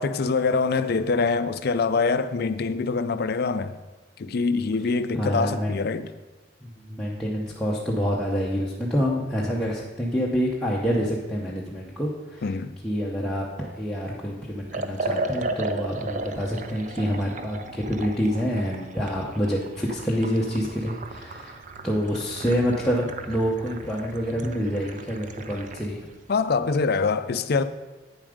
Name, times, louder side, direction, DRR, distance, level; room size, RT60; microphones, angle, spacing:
voice 1, 0.0-3.8 4.2-6.1 12.4-12.8 26.3-27.6, left 4 dB, 55° left, 0.5 m, -24 dB
voice 2, 5.1-5.8 6.8-12.4 12.8-21.6 21.8-26.1, equal, 5° left, 0.8 m, -27 dB
Liquid, 14.7-25.9, right 2 dB, 40° right, 0.5 m, -35 dB
8.8 x 7.3 x 5.0 m
head